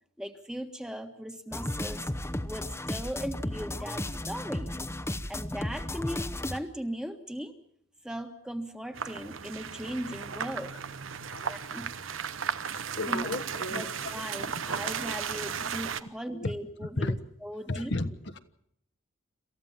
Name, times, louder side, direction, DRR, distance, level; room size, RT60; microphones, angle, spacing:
voice 1, 0.2-2.1 2.4-4.8 5.3-7.5 8.0-10.7 11.4-12.0 13.1-13.3 13.7-17.2 17.4-17.9, equal, 5° right, 6 dB, 1.5 m, -38 dB
sound 1, 1.5-6.6, left 1 dB, 15° left, 0.9 m, -34 dB
sound 2, 8.9-16.0, right 7 dB, 80° right, 1.0 m, -35 dB
voice 2, 12.7-13.9 16.3-16.5 16.8-17.2 17.7-18.4, left 2 dB, 60° left, 10 dB, 1.3 m, -33 dB
27.5 x 15.0 x 7.3 m, 0.72 s
head